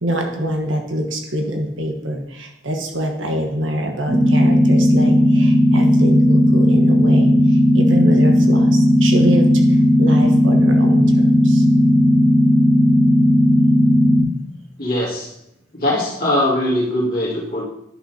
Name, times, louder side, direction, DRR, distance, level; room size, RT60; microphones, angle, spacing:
voice 1, 0.0-11.6, equal, 85° right, 3 dB, 1.2 m, -24 dB
sound 1, 4.1-14.2, left 1 dB, 45° right, 2.4 m, -14 dB
voice 2, 14.8-15.3 15.7-17.6, left 1 dB, 50° left, -4 dB, 2.0 m, -21 dB
10.5 x 5.9 x 2.8 m, 0.81 s
head